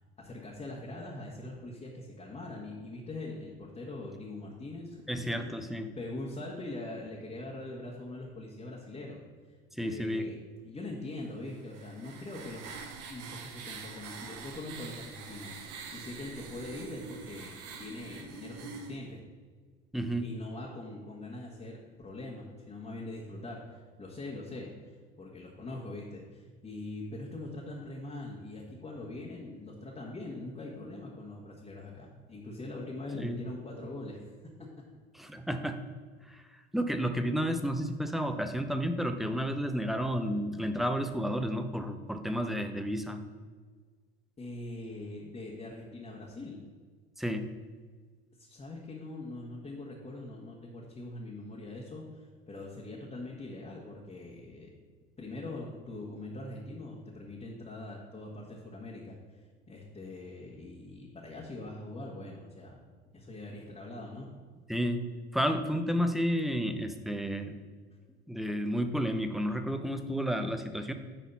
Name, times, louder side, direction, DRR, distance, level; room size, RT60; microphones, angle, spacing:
voice 1, 0.2-9.2 9.5-12.6 13.1-15.5 15.9-19.2 20.2-34.3 34.6-34.7 44.4-46.6 48.4-54.7 55.2-59.2 59.7-62.8 63.1-64.3, left 2 dB, 20° left, -4 dB, 1.7 m, -42 dB
voice 2, 5.1-5.9 9.7-10.3 19.9-20.2 33.1-33.4 35.1-35.8 36.3-43.2 47.2-47.5 64.7-65.0 65.3-67.6 68.3-70.9, equal, ahead, 7 dB, 0.8 m, -31 dB
sound 1, 11.5-19.0, right 5 dB, 55° right, 1.3 m, -45 dB
10.5 x 4.1 x 5.5 m, 1.5 s
hypercardioid pair, 70°, 31 cm